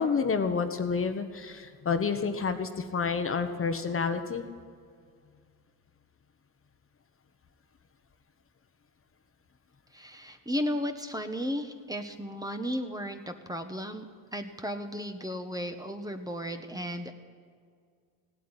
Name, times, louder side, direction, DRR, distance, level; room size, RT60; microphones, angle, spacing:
voice 1, 0.0-4.4, left 5 dB, 35° left, 8 dB, 1.2 m, -29 dB
voice 2, 9.9-14.0 14.3-17.1, equal, 10° right, 6 dB, 1.3 m, -34 dB
16.5 x 8.5 x 9.9 m, 2.1 s
cardioid pair, 85°, 39 cm